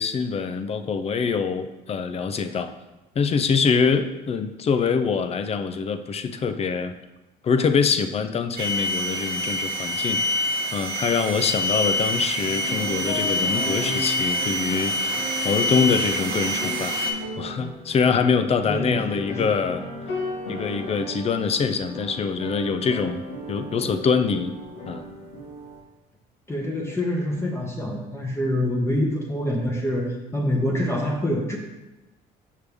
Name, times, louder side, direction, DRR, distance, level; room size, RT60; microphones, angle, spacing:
voice 1, 0.0-2.7 3.2-6.9 7.4-10.2 10.7-17.0 17.4-19.8 20.5-23.2 23.5-24.5 24.9-25.0, left 5 dB, 35° left, 9 dB, 0.5 m, -24 dB
sound 1, 8.6-17.1, left 1 dB, 70° right, 1.0 m, -26 dB
sound 2, 12.4-25.8, left 1 dB, 90° left, 1.6 m, -35 dB
voice 2, 18.6-19.5 26.5-31.6, left 1 dB, 15° left, -1 dB, 1.0 m, -26 dB
6.4 x 5.2 x 3.5 m, 1.0 s
cardioid pair, 110°, 17 cm